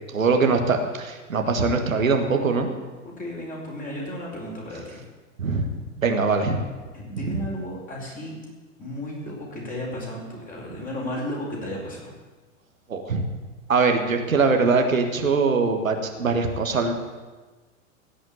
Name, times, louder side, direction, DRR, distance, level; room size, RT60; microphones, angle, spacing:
voice 1, 0.1-2.7 5.4-6.6 7.2-7.4 12.9-13.2 13.7-16.9, right 4 dB, 75° right, 4 dB, 1.6 m, -22 dB
voice 2, 3.0-5.0 6.9-8.3 8.8-12.1, equal, 20° left, -3 dB, 4.8 m, -34 dB
16.5 x 5.8 x 8.9 m, 1.3 s
figure-of-eight pair, 95°, 40 cm